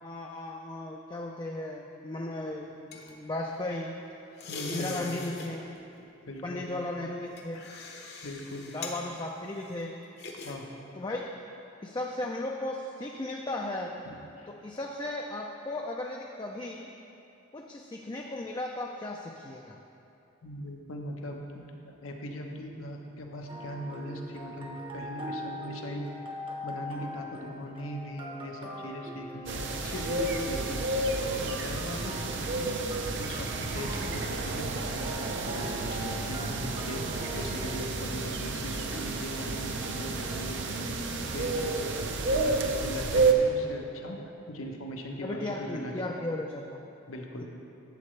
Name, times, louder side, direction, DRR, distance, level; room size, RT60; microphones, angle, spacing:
voice 1, 0.0-4.0 4.7-5.8 6.4-7.7 8.7-10.0 11.0-11.3 11.8-14.0 14.5-16.9 17.5-19.8 38.5-38.6 45.2-46.9, left 2 dB, 20° left, 0 dB, 0.4 m, -36 dB
sound 1, 2.4-3.9 4.4-5.5 5.8-6.1 6.7-10.6 10.9-11.1, left 4 dB, 55° left, 1.0 m, -43 dB
voice 2, 4.5-5.3 6.3-6.7 8.2-8.7 10.4-10.7 14.0-14.5 20.4-26.1 26.6-32.8 33.2-37.0 37.3-40.9 41.2-41.9 42.3-44.2 44.5-46.1 47.1-47.4, equal, 80° left, 2 dB, 1.0 m, -40 dB
sound 2, 23.5-42.8, equal, 25° right, 0.8 m, -43 dB
sound 3, 29.5-43.3, right 3 dB, 60° right, 0.6 m, -31 dB
11.5 x 7.6 x 3.2 m, 2.7 s
head